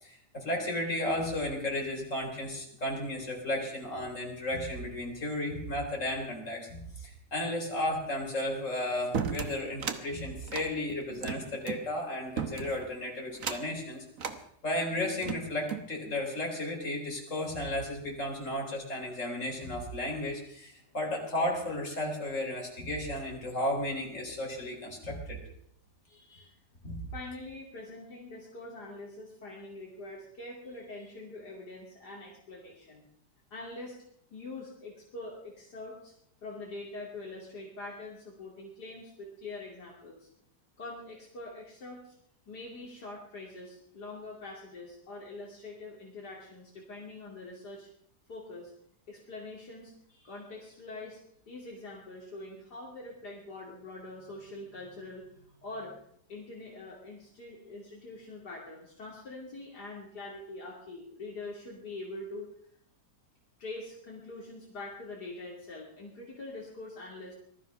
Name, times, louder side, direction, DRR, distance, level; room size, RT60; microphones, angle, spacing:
voice 1, 0.0-14.0 14.6-25.4 26.8-27.0, left 1 dB, 45° left, -1 dB, 4.4 m, -34 dB
sound 1, 9.1-10.0 10.4-11.8 12.4-12.9 13.3-13.8 14.2-14.4 15.0-15.9, right 6 dB, 55° right, 1.4 m, -35 dB
voice 2, 26.1-26.6 27.1-33.0 33.5-34.0 34.3-36.1 36.4-40.3 40.8-42.1 42.5-47.9 48.3-48.7 49.1-51.2 51.5-56.0 56.3-62.5 63.6-67.3, left 2 dB, 70° left, -3 dB, 3.2 m, -44 dB
19.5 x 13.0 x 5.5 m, 0.68 s
omnidirectional pair, 1.8 m